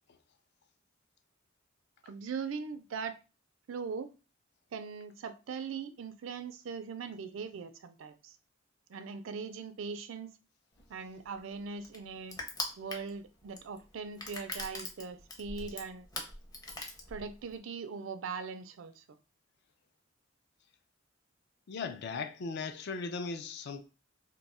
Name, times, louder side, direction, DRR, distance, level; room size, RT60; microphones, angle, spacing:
voice 1, 2.0-3.2 3.7-4.1 4.7-8.4 8.9-10.3 10.9-12.4 12.8-16.1 17.1-19.2, right 5 dB, 75° right, 0.4 m, -40 dB
Crushing, 10.8-17.6, left 2 dB, 20° left, 0.6 m, -42 dB
voice 2, 21.7-23.8, left 4 dB, 60° left, 0.4 m, -38 dB
2.6 x 2.3 x 4.1 m
head